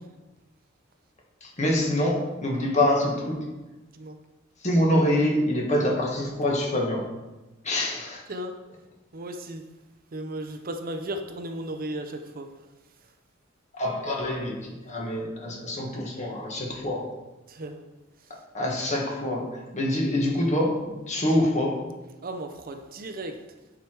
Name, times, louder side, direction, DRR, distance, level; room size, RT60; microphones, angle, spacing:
voice 1, 1.4-3.5 4.6-7.0 7.6-8.2 13.7-17.2 18.5-21.9, left 1 dB, 35° left, -1 dB, 1.8 m, -25 dB
voice 2, 9.1-9.6 10.1-12.5 17.5-17.9 18.2-18.3 22.2-23.4, right 1 dB, 45° right, 6 dB, 0.6 m, -35 dB
9.9 x 5.0 x 4.7 m, 1.1 s
head